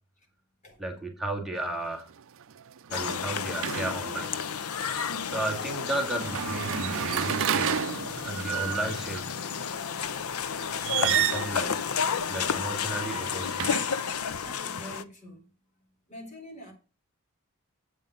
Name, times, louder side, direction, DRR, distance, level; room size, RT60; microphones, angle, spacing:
voice 1, 0.8-2.1 2.9-4.4 5.3-7.9 8.2-9.3 11.0-11.9 12.3-13.8, right 2 dB, ahead, 2.0 m, -34 dB
sound 1, 1.6-1.8 2.2-4.3 6.1-9.2 10.7-11.6 12.8-14.2, right 10 dB, 65° right, 0.5 m, -31 dB
sound 2, 2.9-15.0, left 6 dB, 85° left, 0.7 m, -32 dB
voice 2, 14.4-15.5 16.1-16.7, equal, 35° left, 3.6 m, -45 dB
8.4 x 5.3 x 7.9 m
head